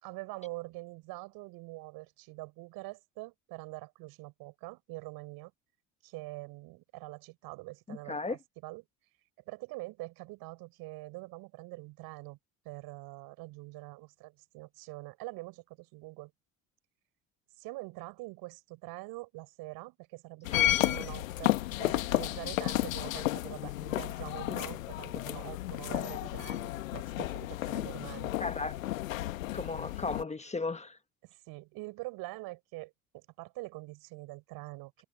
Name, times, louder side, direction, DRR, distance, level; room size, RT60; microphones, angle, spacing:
voice 1, 0.0-5.5 6.0-8.8 9.5-12.4 12.7-16.3 17.6-28.4 31.2-35.0, right 22 dB, 65° right, 5.3 m, -44 dB
voice 2, 7.9-8.4 20.5-20.8 28.4-28.7 29.5-31.0, left 3 dB, 15° left, 1.2 m, -35 dB
sound 1, 20.4-30.2, left 16 dB, 90° left, 1.2 m, -32 dB
hypercardioid pair, 80°, 39 cm